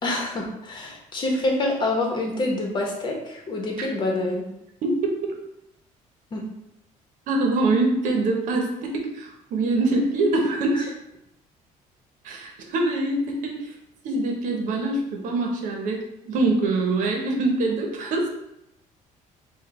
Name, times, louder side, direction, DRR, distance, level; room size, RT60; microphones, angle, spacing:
voice 1, 0.0-4.4 6.3-6.4, left 2 dB, 35° left, 1 dB, 1.0 m, -26 dB
voice 2, 4.8-5.4 7.3-10.9 12.2-13.7 14.0-18.3, right 2 dB, 70° right, 1 dB, 1.0 m, -24 dB
4.9 x 2.4 x 4.2 m, 0.83 s
cardioid pair, 160°, 14 cm